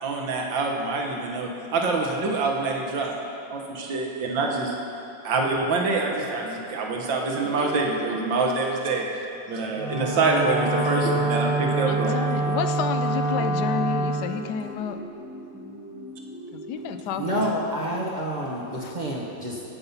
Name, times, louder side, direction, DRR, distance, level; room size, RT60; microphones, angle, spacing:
voice 1, 0.0-3.1 3.5-4.7 5.2-9.1 9.5-12.2, right 3 dB, 65° right, 1 dB, 1.9 m, -25 dB
voice 2, 7.6-8.2 11.9-15.0 16.7-17.5 18.8-18.9, left 7 dB, 75° left, 8 dB, 0.9 m, -31 dB
Wind instrument woodwind instrument, 9.7-14.2, right 2 dB, 30° left, 1.3 m, -26 dB
sound 1, 11.0-18.2, equal, 10° right, 1.4 m, -41 dB
voice 3, 17.1-19.6, equal, 40° right, -3 dB, 0.6 m, -28 dB
16.5 x 5.5 x 5.7 m, 2.7 s
omnidirectional pair, 2.3 m